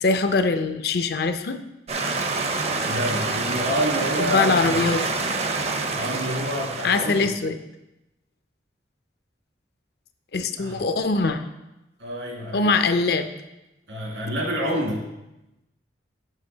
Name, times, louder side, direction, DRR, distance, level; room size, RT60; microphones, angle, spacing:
voice 1, 0.0-1.6 4.2-5.0 6.8-7.6 10.3-11.4 12.5-13.3, left 4 dB, 60° left, 9 dB, 0.5 m, -22 dB
sound 1, 1.9-7.3, right 3 dB, 35° right, 0.5 m, -27 dB
voice 2, 2.9-4.5 5.9-7.3 10.6-10.8 12.0-12.7 13.9-15.1, equal, 75° right, -1 dB, 1.9 m, -28 dB
7.4 x 6.3 x 3.9 m, 0.94 s
head